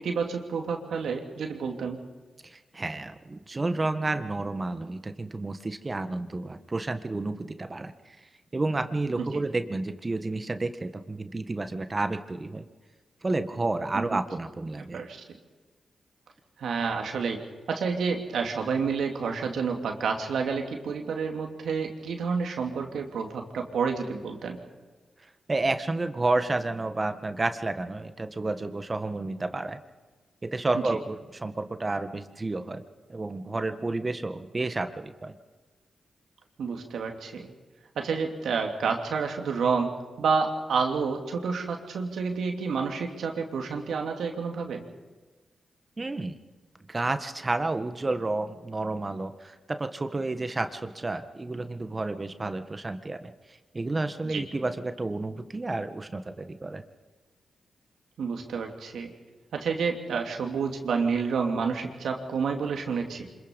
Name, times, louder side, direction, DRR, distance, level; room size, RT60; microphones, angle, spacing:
voice 1, 0.0-2.0 9.2-9.3 13.9-14.2 14.9-15.2 16.6-17.4 17.7-24.6 36.6-37.5 38.0-44.8 54.2-54.4 58.2-59.1 59.5-63.3, right 5 dB, 75° right, 3 dB, 2.8 m, -29 dB
voice 2, 2.4-12.7 13.2-15.0 25.5-29.8 30.4-32.8 33.1-35.4 46.0-46.4 46.9-53.3 53.7-56.8, right 2 dB, 35° right, 9 dB, 1.7 m, -31 dB
25.5 x 22.0 x 5.4 m, 1.3 s
supercardioid pair, 40°, 0 cm